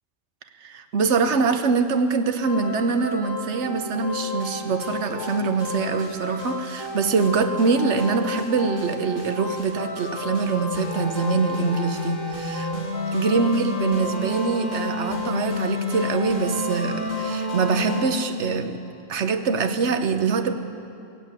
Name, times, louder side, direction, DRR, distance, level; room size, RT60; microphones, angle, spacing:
voice 1, 0.6-12.7 13.1-18.8 19.1-20.5, right 4 dB, 65° right, 8 dB, 1.2 m, -24 dB
sound 1, 2.4-18.0, left 2 dB, 40° left, 3.6 m, -30 dB
15.5 x 8.2 x 9.0 m, 2.5 s
omnidirectional pair, 1.3 m